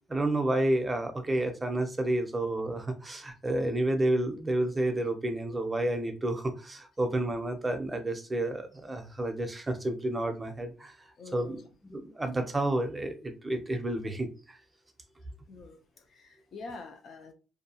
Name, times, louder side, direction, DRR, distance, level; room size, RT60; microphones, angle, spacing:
voice 1, 0.1-10.9 11.3-11.6 11.8-14.6, right 1 dB, 20° right, 0.6 m, -30 dB
voice 2, 11.2-11.7 15.5-17.3, left 3 dB, 60° left, 0.6 m, -46 dB
2.7 x 2.2 x 2.8 m
cardioid pair, 90°, 0 cm